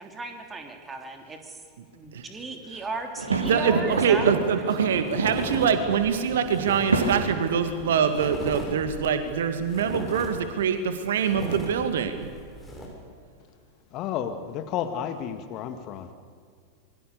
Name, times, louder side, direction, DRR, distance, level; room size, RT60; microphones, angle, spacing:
voice 1, 0.0-1.6 1.9-4.6, right 3 dB, 15° right, 4 dB, 3.2 m, -36 dB
sound 1, 3.2-8.5, right 2 dB, 75° right, 2.6 m, -30 dB
voice 2, 3.3-12.3, right 7 dB, 60° right, 9 dB, 2.0 m, -24 dB
sound 2, 4.1-4.2 4.4-4.7 5.0-12.9, left 1 dB, 10° left, 6.6 m, -38 dB
voice 3, 13.9-16.1, left 9 dB, 40° left, 8 dB, 2.0 m, -32 dB
27.0 x 23.0 x 6.9 m, 2.1 s
figure-of-eight pair, 90°, 0 cm